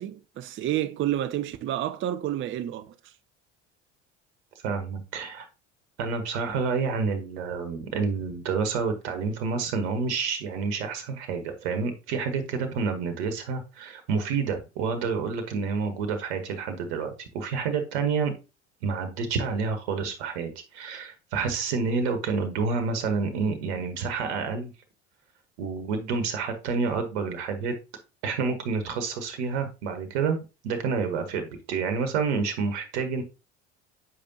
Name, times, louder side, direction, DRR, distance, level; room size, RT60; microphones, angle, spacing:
voice 1, 0.0-3.1, right 12 dB, 35° right, 0.5 m, -30 dB
voice 2, 4.6-5.5 6.0-18.3 18.8-24.7 25.6-27.7 28.2-30.4 30.6-33.2, right 5 dB, 70° right, 1.2 m, -29 dB
7.6 x 5.1 x 2.8 m
hypercardioid pair, 70°, 34 cm